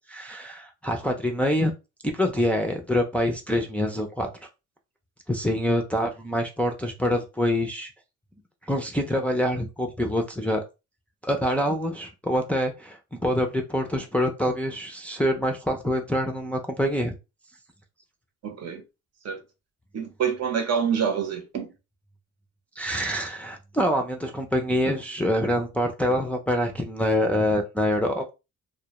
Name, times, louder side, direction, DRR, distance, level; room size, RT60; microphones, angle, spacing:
voice 1, 0.1-1.7 2.0-4.3 5.3-7.9 8.7-10.6 11.2-17.2 22.8-28.3, equal, 5° left, 0.4 m, -25 dB
voice 2, 18.4-18.8 19.2-19.4 19.9-21.7, right 7 dB, 60° right, 0.7 m, -27 dB
2.1 x 2.1 x 2.9 m
cardioid pair, 90°, 30 cm